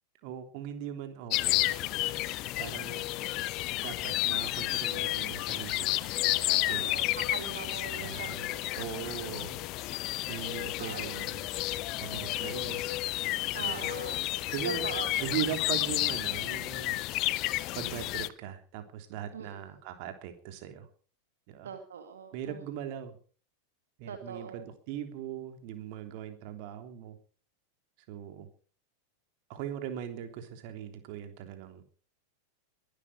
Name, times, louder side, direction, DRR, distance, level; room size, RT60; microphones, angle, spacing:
voice 1, 0.2-1.7 2.6-3.1 3.8-6.1 6.7-7.0 8.0-8.5 8.8-9.6 10.3-11.5 12.0-13.0 13.6-14.0 14.5-14.9 15.2-17.0 17.7-20.9 21.5-21.7 22.3-23.2 24.0-27.2 28.1-28.5 29.5-31.8, right 10 dB, 45° right, 7 dB, 3.3 m, -40 dB
sound 1, 1.3-18.3, left 18 dB, 40° left, 0.8 m, -31 dB
voice 2, 6.5-9.5 10.6-11.2 13.5-14.2 14.6-15.1 19.3-19.6 21.6-22.6 24.1-24.7, right 7 dB, 65° right, 6 dB, 2.0 m, -42 dB
22.5 x 12.0 x 5.0 m, 0.41 s
figure-of-eight pair, 90°, 0 cm